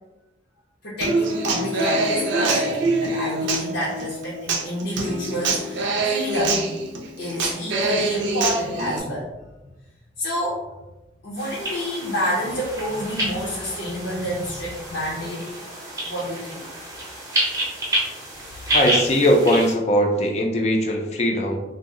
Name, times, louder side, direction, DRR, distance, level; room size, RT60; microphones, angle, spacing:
voice 1, 0.8-6.7 7.2-9.3 10.2-10.6 11.2-15.4 16.0-16.7, equal, 80° left, -7 dB, 0.7 m, -29 dB
Human voice / Acoustic guitar, 1.0-9.0, right 2 dB, 75° right, 0.4 m, -24 dB
sound 1, 11.4-19.7, right 1 dB, 20° right, 0.6 m, -29 dB
voice 2, 18.7-21.6, equal, 35° left, 1 dB, 0.4 m, -20 dB
2.6 x 2.0 x 3.6 m, 1.0 s
head